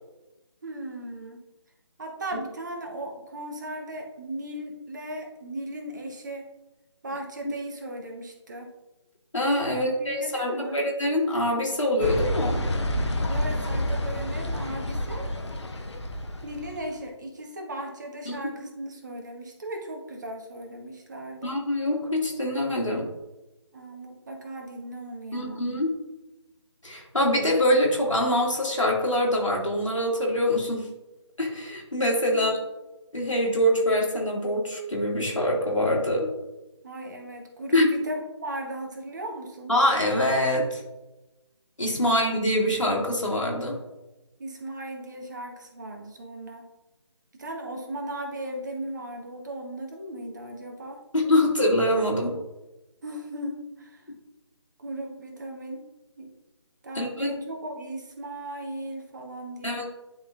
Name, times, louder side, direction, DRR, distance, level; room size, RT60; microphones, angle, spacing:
voice 1, 0.6-1.4 2.0-6.5 7.0-8.7 9.7-10.8 13.3-15.3 16.4-21.6 23.7-25.7 32.3-32.5 36.8-39.7 42.0-42.2 44.4-46.7 47.4-51.0 53.0-54.1 54.8-55.9 56.2-56.3 56.8-59.9, right 1 dB, 40° right, 2 dB, 1.1 m, -37 dB
voice 2, 9.3-12.6 18.3-18.4 21.4-23.1 25.3-25.9 26.8-30.9 31.4-32.5 33.1-36.3 37.7-37.9 39.7-40.8 41.8-43.8 51.1-52.3 57.0-57.3 59.6-59.9, left 1 dB, 85° left, -1 dB, 2.2 m, -24 dB
sound 1, 12.0-16.8, left 1 dB, 65° left, 0.9 m, -29 dB
10.5 x 3.7 x 2.5 m, 1.0 s
figure-of-eight pair, 155°, 16 cm